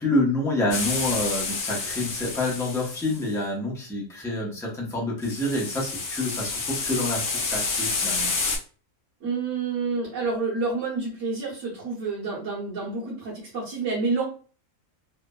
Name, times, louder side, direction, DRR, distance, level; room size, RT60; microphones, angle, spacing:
voice 1, 0.0-8.3, left 1 dB, 5° left, -4 dB, 0.4 m, -27 dB
sound 1, 0.7-3.2 5.2-8.6, left 4 dB, 70° left, 1.0 m, -29 dB
voice 2, 9.2-14.2, right 4 dB, 65° right, -8 dB, 1.3 m, -28 dB
3.1 x 2.0 x 2.2 m, 0.39 s
omnidirectional pair, 1.4 m